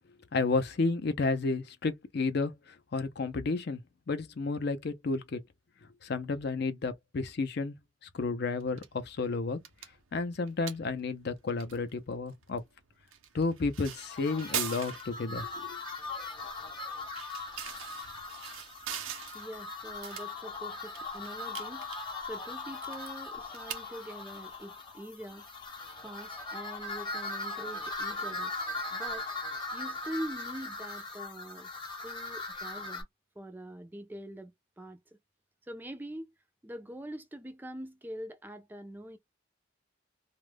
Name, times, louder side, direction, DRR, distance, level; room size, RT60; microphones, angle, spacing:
voice 1, 0.3-2.5 2.9-3.8 4.1-5.4 6.0-7.8 8.1-9.6 10.1-12.6 13.3-15.8, left 3 dB, 55° left, 0.5 m, -31 dB
sound 1, 8.6-26.9, right 9 dB, 85° right, 0.6 m, -45 dB
sound 2, 14.0-33.0, left 3 dB, 25° left, 0.8 m, -39 dB
voice 2, 19.3-21.9 22.2-25.4 26.0-28.5 28.9-29.2 29.7-31.7 32.0-33.1 33.4-34.5 34.8-35.0 35.7-36.3 36.6-39.2, right 1 dB, 10° right, 0.4 m, -43 dB
2.3 x 2.1 x 3.2 m
head